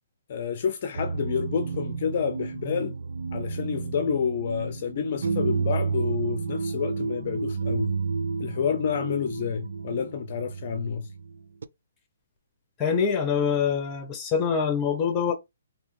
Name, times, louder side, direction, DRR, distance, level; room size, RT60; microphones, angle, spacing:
voice 1, 0.3-3.0 3.3-7.9 8.4-11.1, left 7 dB, 45° left, 0.5 m, -29 dB
sound 1, 0.9-11.6, right 5 dB, 75° right, 0.4 m, -31 dB
voice 2, 12.8-15.3, left 6 dB, 20° left, 1.1 m, -25 dB
3.6 x 2.8 x 3.4 m
hypercardioid pair, 150°, 0 cm